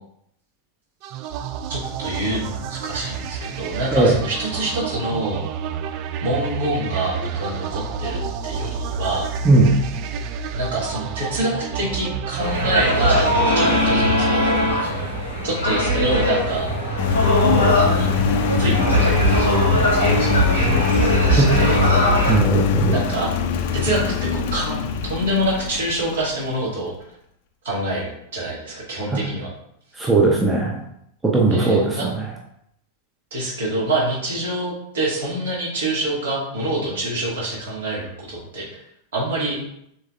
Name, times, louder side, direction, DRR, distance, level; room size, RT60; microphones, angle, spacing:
sound 1, 1.0-14.7, right 7 dB, 40° right, 0.3 m, -30 dB
voice 1, 1.7-5.4 6.2-9.3 10.6-14.5 15.4-16.7 17.7-18.2 18.6-19.2 19.9-20.4 21.2-21.8 22.9-23.3 23.7-26.9 27.6-29.5 31.5-32.1 33.3-38.8 39.1-39.6, right 1 dB, 60° right, -4 dB, 1.9 m, -26 dB
sound 2, 12.4-22.4, equal, 85° right, 1.8 m, -20 dB
Engine, 17.0-26.4, left 6 dB, 50° left, 0.4 m, -23 dB
voice 2, 22.3-23.0 29.1-29.2 30.0-30.8 31.2-32.2, right 3 dB, 10° right, -2 dB, 0.7 m, -18 dB
6.3 x 3.3 x 2.4 m, 0.75 s
figure-of-eight pair, 90°, 0 cm